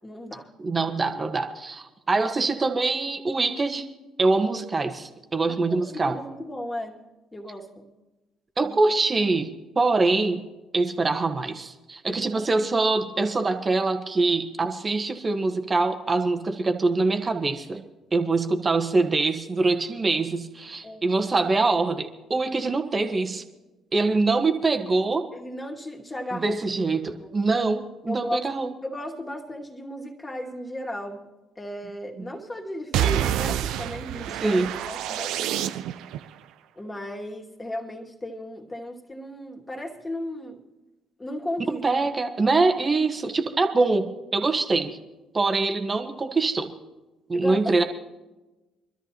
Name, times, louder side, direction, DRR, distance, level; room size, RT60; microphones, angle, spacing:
voice 1, 0.0-0.5 5.5-7.0 7.3-7.9 8.6-8.8 12.1-12.5 20.8-21.2 25.3-26.6 27.2-27.3 28.1-28.4 28.8-31.3 31.6-35.7 36.8-40.6 41.2-42.1 47.3-47.8, left 1 dB, 20° left, 1 dB, 2.5 m, -35 dB
voice 2, 0.6-3.9 4.2-6.2 8.6-10.4 10.7-17.8 18.1-23.4 23.9-25.3 26.3-28.7 32.2-32.3 34.4-34.7 41.7-45.0 45.3-46.7 47.3-47.8, right 3 dB, 30° right, 6 dB, 1.5 m, -24 dB
sound 1, 32.9-36.2, right 11 dB, 70° right, 0.4 m, -27 dB
24.5 x 13.0 x 3.0 m, 1.1 s
hypercardioid pair, 50°, 0 cm